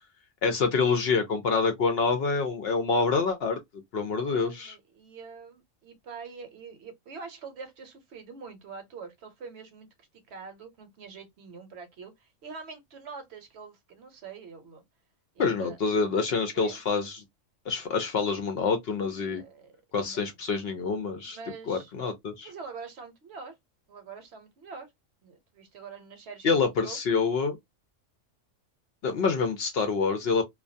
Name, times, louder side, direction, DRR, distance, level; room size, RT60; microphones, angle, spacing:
voice 1, 0.4-3.6 3.9-4.8 15.4-17.2 17.7-19.4 19.9-21.4 21.7-22.5 26.4-27.6 29.0-30.4, left 4 dB, 65° left, 0.7 m, -26 dB
voice 2, 4.2-9.9 10.3-14.8 15.3-15.8 16.5-16.8 19.2-20.2 21.3-21.9 22.4-23.6 23.9-24.9 25.2-27.0, right 5 dB, 65° right, 0.9 m, -45 dB
2.2 x 2.2 x 2.5 m
omnidirectional pair, 1.3 m